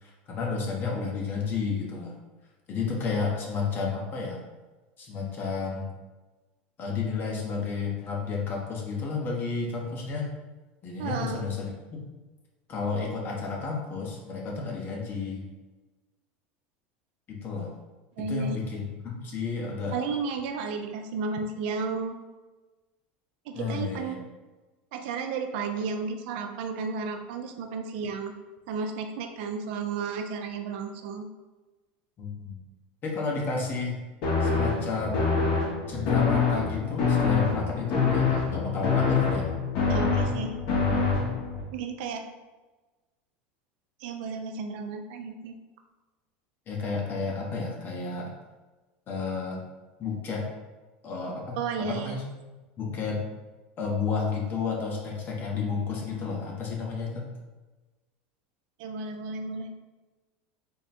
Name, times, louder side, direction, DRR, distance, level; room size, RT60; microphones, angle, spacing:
voice 1, 0.0-2.2 2.7-4.4 5.0-5.9 6.8-10.3 10.8-12.0 12.7-15.4 17.3-17.7 18.2-20.0 23.5-24.2 32.2-32.5 33.0-34.0 34.4-35.3 35.9-39.6 46.7-48.3 49.1-49.7 50.0-50.4 51.0-52.3 52.8-53.2 53.8-57.3, left 4 dB, 35° left, -1 dB, 1.0 m, -31 dB
voice 2, 11.0-11.4 18.2-18.6 19.9-22.2 23.5-24.1 24.9-28.3 28.7-31.3 39.9-40.6 41.7-42.2 44.0-45.5 51.6-52.1 58.8-59.7, right 4 dB, 70° right, 5 dB, 0.5 m, -33 dB
sound 1, 34.2-41.6, left 5 dB, 55° left, 1.2 m, -25 dB
3.8 x 2.3 x 4.2 m, 1.2 s
supercardioid pair, 125°, 6 cm